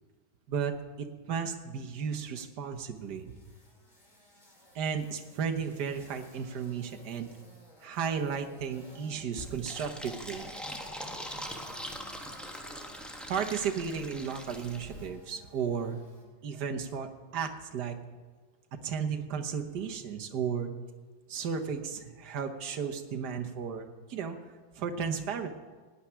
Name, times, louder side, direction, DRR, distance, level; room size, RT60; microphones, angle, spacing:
voice 1, 0.5-3.3 4.7-7.3 7.8-10.5 13.3-16.0 16.4-18.0 18.8-20.7 21.3-25.5, right 6 dB, 60° right, 5 dB, 1.5 m, -34 dB
sound 1, 2.6-16.2, equal, 20° left, 2.8 m, -57 dB
Fill (with liquid), 9.4-15.1, equal, ahead, 0.9 m, -42 dB
17.0 x 5.8 x 10.0 m, 1.4 s
omnidirectional pair, 2.2 m